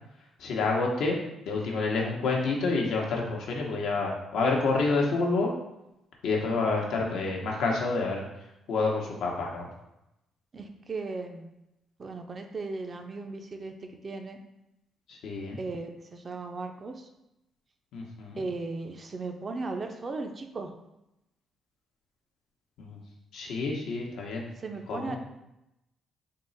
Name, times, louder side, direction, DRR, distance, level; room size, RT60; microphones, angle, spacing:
voice 1, 0.4-1.2 1.4-5.5 6.2-8.2 8.7-9.7 15.1-15.6 17.9-18.4 22.8-23.0 23.3-24.5 24.9-25.2, left 3 dB, 80° left, -1 dB, 0.8 m, -28 dB
voice 2, 10.5-11.5 12.0-14.4 15.6-17.1 18.4-20.7 24.6-25.2, right 3 dB, 40° right, 5 dB, 0.4 m, -37 dB
3.6 x 2.0 x 3.9 m, 0.89 s
cardioid pair, 90°, 0 cm